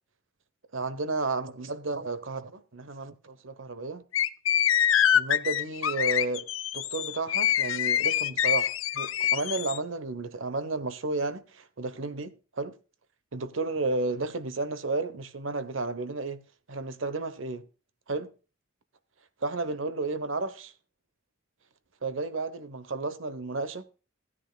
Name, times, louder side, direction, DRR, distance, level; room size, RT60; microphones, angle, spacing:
voice 1, 0.7-4.0 5.1-6.5 6.7-12.8 13.3-16.4 16.7-17.6 18.1-18.3 19.4-20.7 22.0-23.9, right 3 dB, 70° right, 1.1 m, -32 dB
sound 1, 4.1-9.8, left 10 dB, 80° left, 0.6 m, -25 dB
16.0 x 10.0 x 2.4 m
head